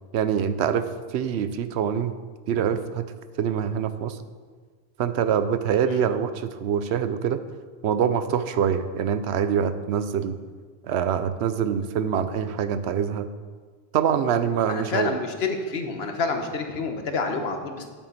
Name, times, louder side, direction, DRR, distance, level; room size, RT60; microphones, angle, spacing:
voice 1, 0.1-2.2 2.5-3.1 3.4-4.2 5.0-7.4 7.8-10.4 10.9-13.3 13.9-15.1, right 8 dB, 80° right, 11 dB, 0.9 m, -25 dB
voice 2, 14.7-17.9, left 4 dB, 70° left, 5 dB, 1.2 m, -28 dB
9.4 x 8.6 x 4.1 m, 1.5 s
omnidirectional pair, 1.1 m